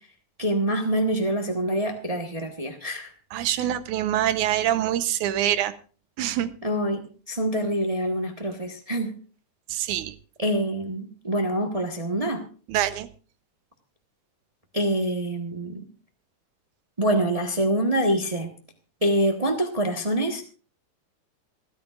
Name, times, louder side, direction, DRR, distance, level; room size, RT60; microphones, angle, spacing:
voice 1, 0.4-3.1 6.6-9.1 10.4-12.4 14.7-15.9 17.0-18.5 19.0-20.4, right 1 dB, 45° right, 0.4 m, -25 dB
voice 2, 3.3-5.7 6.2-6.5 9.7-10.2 12.7-13.1, right 12 dB, 85° right, 2.4 m, -25 dB
27.0 x 10.0 x 2.5 m
omnidirectional pair, 3.4 m